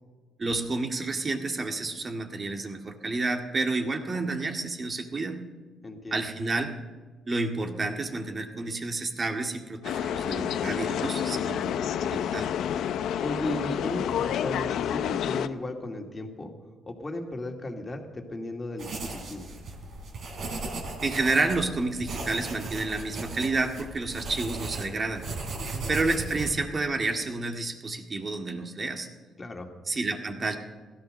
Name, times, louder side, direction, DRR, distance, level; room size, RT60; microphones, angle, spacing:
voice 1, 0.4-5.4 6.1-6.7 7.3-12.5 21.0-25.3 25.9-29.1 29.9-30.6, right 3 dB, 35° right, 4 dB, 2.0 m, -30 dB
voice 2, 5.8-6.3 13.2-16.5 16.9-19.5 25.5-25.8 29.4-29.7, left 1 dB, 25° left, 3 dB, 2.4 m, -36 dB
sound 1, 9.8-15.5, left 9 dB, 75° left, 0.6 m, -29 dB
sound 2, 18.8-26.5, right 3 dB, 65° right, 3.3 m, -37 dB
16.0 x 13.5 x 6.6 m, 1.4 s
cardioid pair, 90°, 0 cm